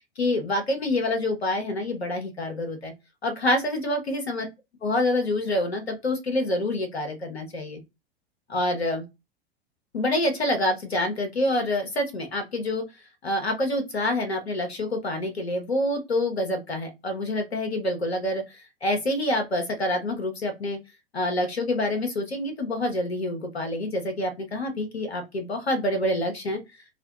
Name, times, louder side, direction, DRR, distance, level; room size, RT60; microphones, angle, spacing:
voice 1, 0.2-2.9 3.2-4.5 4.8-7.8 8.5-9.0 9.9-12.8 13.2-20.8 21.1-26.6, left 1 dB, 75° left, 4 dB, 1.3 m, -27 dB
4.9 x 2.6 x 2.4 m, 0.24 s
figure-of-eight pair, 85°, 32 cm